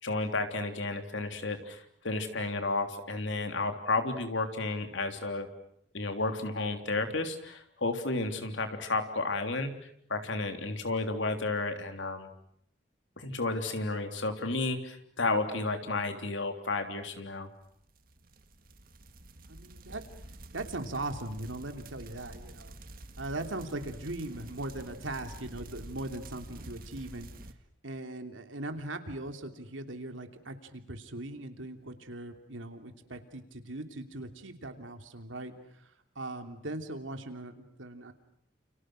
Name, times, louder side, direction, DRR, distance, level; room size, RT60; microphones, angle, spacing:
voice 1, 0.0-5.5 5.9-9.7 10.1-12.3 13.2-17.5, left 3 dB, 80° left, 6 dB, 3.3 m, -32 dB
sound 1, 17.7-27.5, right 1 dB, 50° right, 1.8 m, -48 dB
voice 2, 19.5-20.0 20.5-22.7 23.2-27.3 27.8-35.5 36.1-38.1, right 2 dB, 90° right, 6 dB, 3.1 m, -39 dB
29.5 x 29.5 x 6.4 m, 0.69 s
head